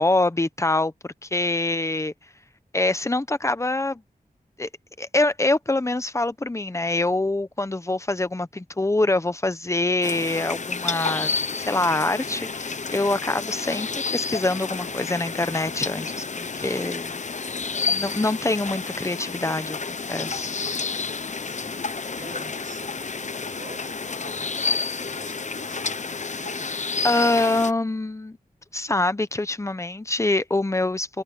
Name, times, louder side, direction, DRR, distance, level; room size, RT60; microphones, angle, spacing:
voice 1, 0.0-2.1 2.7-4.0 4.6-4.7 5.0-17.2 17.9-20.5 27.0-28.4 28.7-31.2, left 2 dB, 20° left, 0.9 m, -25 dB
sound 1, 10.0-27.7, left 4 dB, 50° left, 0.8 m, -30 dB
voice 2, 13.8-14.1 21.4-26.7, right 4 dB, 60° right, 7.3 m, -47 dB
wide cardioid pair, 90°, 15 cm